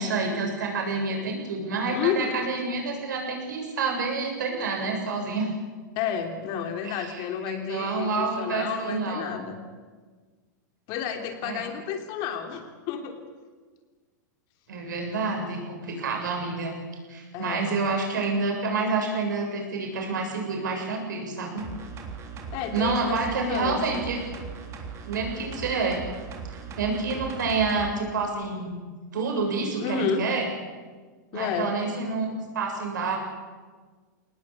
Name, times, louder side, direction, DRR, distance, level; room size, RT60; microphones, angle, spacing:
voice 1, 0.0-5.5 6.8-9.3 11.4-11.6 14.7-16.7 17.1-21.7 22.7-24.2 25.0-26.0 26.5-28.8 29.1-30.5 31.3-32.3 32.5-33.2, right 4 dB, 80° right, 1 dB, 7.4 m, -28 dB
voice 2, 1.9-2.4 5.9-9.6 10.9-13.2 17.3-17.7 22.5-24.1 29.8-30.3 31.3-31.7, left 7 dB, 45° left, 5 dB, 3.3 m, -31 dB
sound 1, 21.6-27.9 28.3-28.4, right 5 dB, 30° right, 3.4 m, -39 dB
22.0 x 19.0 x 8.5 m, 1.4 s
hypercardioid pair, 125°, 10 cm